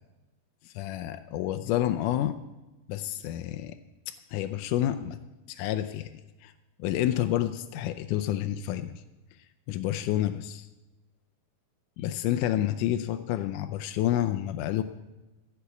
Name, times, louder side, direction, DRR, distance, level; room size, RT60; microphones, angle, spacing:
voice 1, 0.6-2.4 2.9-3.8 4.1-5.2 5.5-6.1 6.4-6.5 6.8-8.9 9.7-10.7 12.0-14.8, left 12 dB, 80° left, 9 dB, 2.1 m, -29 dB
15.0 x 7.2 x 8.1 m, 1.1 s
omnidirectional pair, 3.9 m